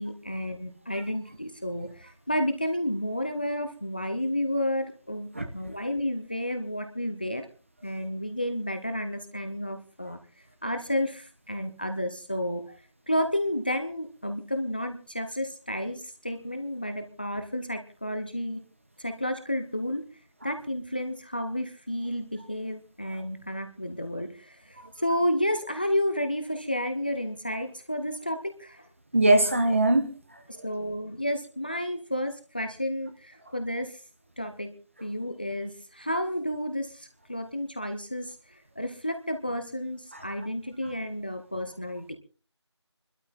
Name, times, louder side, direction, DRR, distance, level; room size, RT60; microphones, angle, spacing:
voice 1, 0.0-5.3 5.5-7.5 7.8-10.2 10.6-12.6 13.1-18.6 19.0-20.0 20.4-28.9 30.5-34.0 34.4-34.7 35.0-42.2, equal, 20° left, 0.8 m, -31 dB
voice 2, 29.1-30.6 40.1-40.2, right 2 dB, 25° right, 1.1 m, -23 dB
25.5 x 12.5 x 3.7 m
figure-of-eight pair, 175°, 15 cm